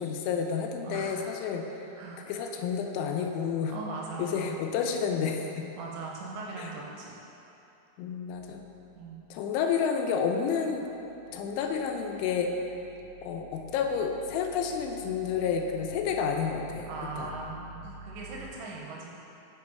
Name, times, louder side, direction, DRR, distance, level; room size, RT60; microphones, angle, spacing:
voice 1, 0.0-1.6 2.3-3.7 4.2-5.7 6.6-6.7 8.0-8.6 9.3-10.8 11.3-12.5 13.2-16.9 17.2-17.3, left 6 dB, 85° left, 3 dB, 2.9 m, -30 dB
voice 2, 0.8-1.2 1.9-2.2 3.7-4.5 5.8-7.2 9.0-9.3 16.9-19.1, right 3 dB, 85° right, -2 dB, 2.7 m, -40 dB
sound 1, 8.3-9.5 9.9-18.5, right 2 dB, 50° left, 1.7 m, -50 dB
6.7 x 6.5 x 4.2 m, 2.9 s
omnidirectional pair, 5.4 m